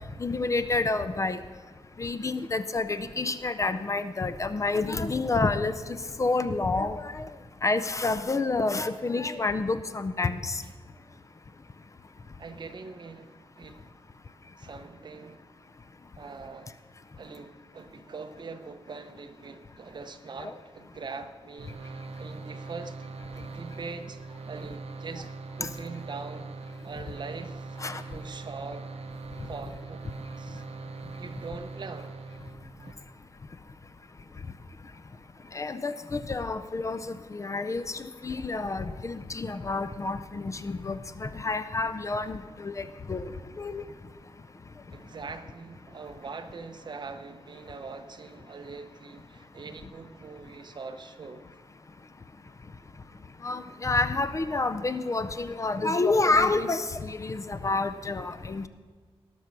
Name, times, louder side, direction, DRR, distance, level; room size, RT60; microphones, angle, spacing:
voice 1, 0.2-1.4 2.0-5.7 6.2-7.2 7.6-10.6 20.4-20.5 25.6-25.7 27.8-28.0 35.5-43.3 43.6-43.8 53.4-58.7, left 3 dB, 30° left, 0.5 m, -29 dB
voice 2, 12.4-13.9 14.6-15.5 16.2-16.8 17.2-23.0 23.3-25.3 25.6-26.5 26.8-28.9 29.5-30.1 30.4-30.7 31.2-32.2 44.9-51.5, right 4 dB, 45° right, 0.8 m, -42 dB
sound 1, 21.6-32.9, right 3 dB, 80° right, 0.8 m, -41 dB
19.0 x 6.3 x 5.9 m
wide cardioid pair, 150°, 10 cm